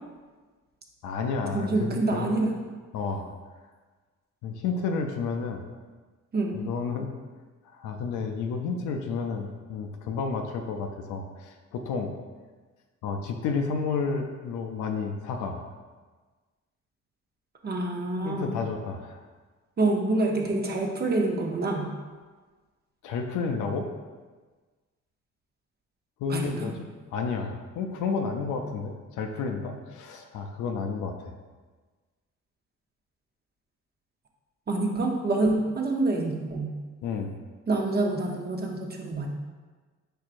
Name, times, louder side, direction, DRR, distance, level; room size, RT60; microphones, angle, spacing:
voice 1, 1.0-2.4 2.9-3.3 4.4-5.6 6.5-7.1 7.6-12.1 13.0-15.6 18.2-19.2 23.0-23.9 26.2-31.3 37.0-37.4, left 5 dB, 85° left, 3 dB, 0.5 m, -31 dB
voice 2, 1.5-2.5 6.3-6.6 17.6-18.6 19.8-21.9 26.3-26.7 34.7-36.7 37.7-39.3, right 2 dB, 30° right, 1 dB, 0.7 m, -27 dB
4.7 x 4.5 x 2.5 m, 1.4 s
cardioid pair, 90°, 30 cm